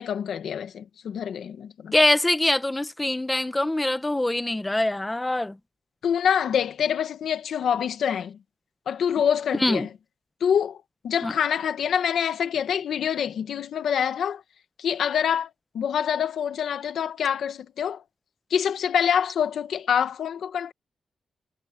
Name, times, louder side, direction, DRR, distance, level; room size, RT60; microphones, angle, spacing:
voice 1, 0.0-1.9 6.0-8.4 8.9-9.9 10.4-14.4 14.8-18.0 18.5-20.7, left 8 dB, 80° left, 2.0 m, -26 dB
voice 2, 1.9-5.5 9.6-9.9 11.2-11.3, left 1 dB, 10° left, 1.2 m, -23 dB
wide cardioid pair, 140°, 0 cm